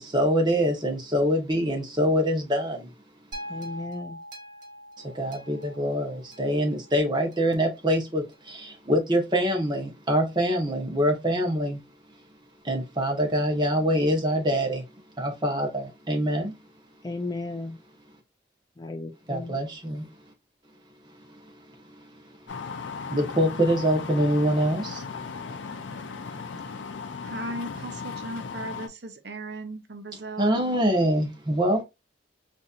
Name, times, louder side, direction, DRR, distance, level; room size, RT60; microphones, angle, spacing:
voice 1, 0.0-2.9 5.1-11.8 12.6-14.8 15.2-16.5 19.3-20.1 21.3-21.5 21.9-22.1 23.1-25.0 30.4-31.8, equal, 25° right, 1.0 m, -25 dB
sound 1, 3.3-7.6 8.3-8.4, equal, 45° right, 1.5 m, -43 dB
voice 2, 3.5-4.2 17.0-17.8 18.8-19.5, left 2 dB, 20° left, 0.3 m, -35 dB
sound 2, 22.5-28.9, left 5 dB, 75° left, 0.5 m, -37 dB
voice 3, 27.2-30.6, right 2 dB, 60° right, 0.7 m, -37 dB
4.0 x 2.6 x 2.4 m
head